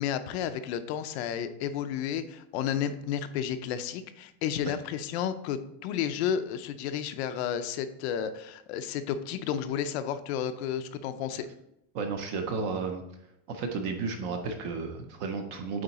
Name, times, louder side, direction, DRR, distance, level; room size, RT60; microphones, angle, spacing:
voice 1, 0.0-11.5, left 9 dB, 50° left, 10 dB, 0.5 m, -32 dB
voice 2, 11.9-13.0 13.5-15.8, right 4 dB, 30° right, 5 dB, 0.4 m, -33 dB
8.6 x 3.8 x 4.0 m, 0.82 s
supercardioid pair, 170°, 42 cm